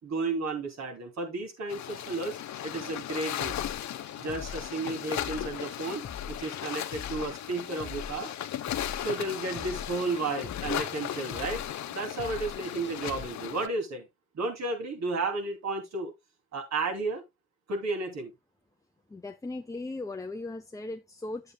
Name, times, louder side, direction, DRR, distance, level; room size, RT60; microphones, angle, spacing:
voice 1, 0.0-3.5 4.2-8.3 9.0-14.1 14.3-16.1 16.5-17.2 17.7-18.3, right 3 dB, 60° right, 3.0 m, -33 dB
sound 1, 1.7-13.7, left 11 dB, 65° left, 0.8 m, -36 dB
sound 2, 3.4-13.3, left 6 dB, 40° left, 0.9 m, -44 dB
voice 2, 19.1-21.5, left 2 dB, 10° left, 0.6 m, -38 dB
10.0 x 7.8 x 2.3 m
cardioid pair, 90°, 30 cm